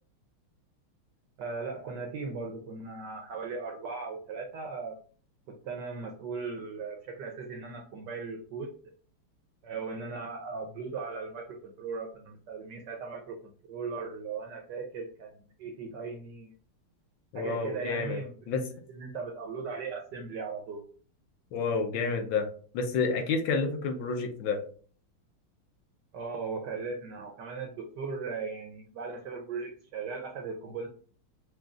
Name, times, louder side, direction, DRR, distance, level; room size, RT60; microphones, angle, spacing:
voice 1, 1.4-5.0 5.5-8.7 9.6-15.3 15.6-16.5 17.3-18.3 18.9-20.8 26.1-30.9, right 4 dB, 70° right, 2 dB, 1.1 m, -38 dB
voice 2, 17.3-18.2 18.5-18.6 21.5-22.5 22.7-24.6, left 4 dB, 75° left, 5 dB, 1.4 m, -29 dB
6.1 x 2.3 x 2.4 m, 0.42 s
omnidirectional pair, 2.3 m